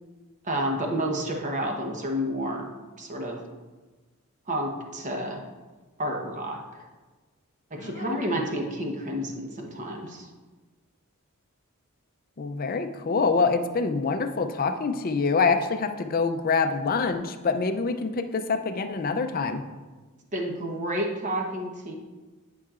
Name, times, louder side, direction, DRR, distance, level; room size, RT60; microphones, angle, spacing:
voice 1, 0.4-2.7 3.0-3.4 4.5-5.4 6.0-6.8 7.7-10.3 20.3-21.9, equal, 35° right, 1 dB, 1.0 m, -30 dB
voice 2, 7.8-8.2 12.4-19.6, left 4 dB, 40° left, 8 dB, 0.5 m, -26 dB
11.5 x 5.6 x 2.5 m, 1.3 s
head